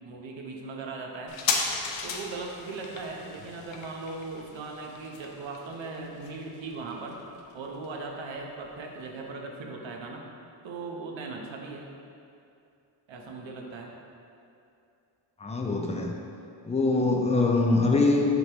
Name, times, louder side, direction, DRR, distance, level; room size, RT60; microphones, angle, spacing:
voice 1, 0.0-1.4 2.0-7.2 7.5-10.3 10.6-11.9 13.1-13.9 16.9-17.3, right 3 dB, 75° right, 1 dB, 0.9 m, -38 dB
sound 1, 1.3-8.4 8.6-8.7, left 5 dB, 75° left, 0.7 m, -36 dB
voice 2, 15.4-16.2 16.7-18.3, left 3 dB, 15° left, 1 dB, 0.5 m, -23 dB
8.0 x 3.0 x 4.9 m, 2.6 s
wide cardioid pair, 150°, 46 cm